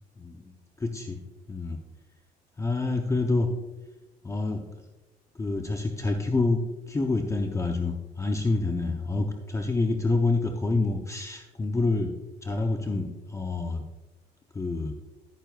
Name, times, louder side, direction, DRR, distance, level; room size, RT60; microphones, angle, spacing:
voice 1, 0.2-1.2 1.5-1.8 2.6-3.5 4.2-4.6 5.3-12.1 12.4-13.9 14.5-14.9, left 3 dB, 15° left, 4 dB, 0.7 m, -27 dB
12.0 x 9.1 x 2.4 m, 1.1 s
cardioid pair, 110°, 17 cm